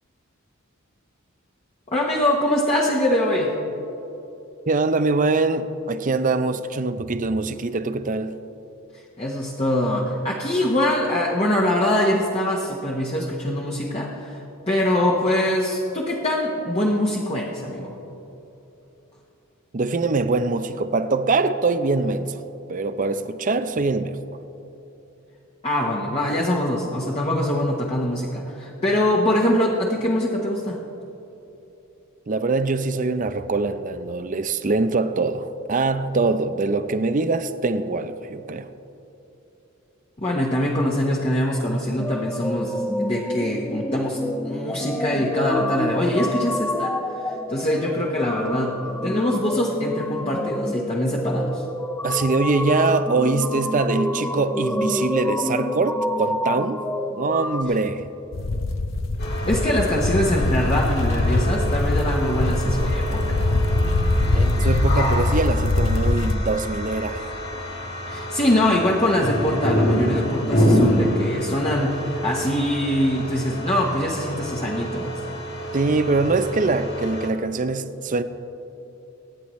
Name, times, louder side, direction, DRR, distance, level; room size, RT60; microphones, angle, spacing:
voice 1, 1.9-3.5 9.2-18.0 25.6-30.8 40.2-51.6 59.5-63.6 68.0-75.2, left 1 dB, 30° left, -3 dB, 1.1 m, -23 dB
voice 2, 4.7-8.3 19.7-22.4 22.7-24.2 32.3-38.7 52.0-56.8 57.1-58.1 64.3-67.2 75.7-78.2, right 3 dB, 40° right, 11 dB, 0.5 m, -23 dB
sound 1, 42.0-57.6, left 1 dB, 10° left, 0.5 m, -28 dB
sound 2, 58.3-66.4, left 2 dB, 65° left, 0.7 m, -22 dB
sound 3, 59.2-77.3, equal, 50° left, 2.4 m, -27 dB
24.5 x 9.7 x 3.1 m, 3.0 s
head